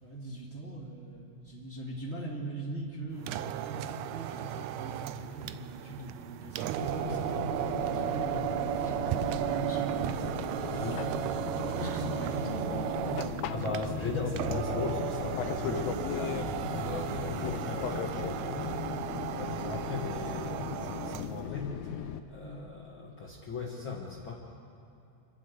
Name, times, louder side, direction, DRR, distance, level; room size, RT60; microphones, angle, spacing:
voice 1, 0.0-11.0 11.6-14.0 18.5-18.7 22.4-22.6, right 2 dB, 25° right, -4 dB, 2.0 m, -41 dB
sound 1, 3.2-21.4, right 13 dB, 80° right, 1.6 m, -35 dB
Fixed-wing aircraft airplane, 6.8-22.2, left 9 dB, 75° left, 1.6 m, -37 dB
voice 2, 10.7-11.1 13.2-19.1 19.4-24.3, left 3 dB, 45° left, -2 dB, 1.9 m, -38 dB
28.5 x 11.5 x 8.1 m, 2.8 s
omnidirectional pair, 3.8 m